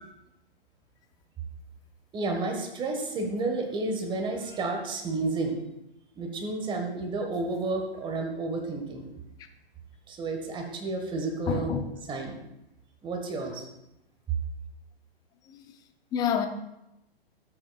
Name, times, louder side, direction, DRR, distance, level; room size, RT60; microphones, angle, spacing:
voice 1, 2.1-5.6 6.2-9.1 10.1-11.7 12.1-12.4 13.0-13.7, right 3 dB, 15° right, 2 dB, 1.4 m, -31 dB
voice 2, 11.5-11.8 15.5-15.6 16.1-16.5, left 8 dB, 15° left, 8 dB, 0.5 m, -27 dB
12.5 x 8.6 x 2.3 m, 0.87 s
hypercardioid pair, 125°, 30 cm